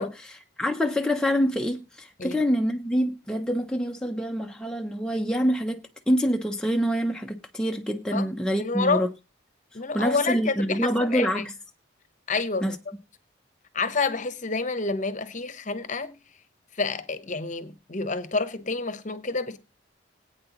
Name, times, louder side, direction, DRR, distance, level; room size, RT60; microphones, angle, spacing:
voice 1, 0.0-9.1 9.9-11.5 12.6-12.8, equal, 5° left, 0.6 m, -26 dB
voice 2, 8.1-9.0 9.7-11.4 12.3-12.8 13.7-16.2 16.7-19.6, left 4 dB, 40° left, 0.9 m, -29 dB
21.0 x 8.8 x 3.0 m
head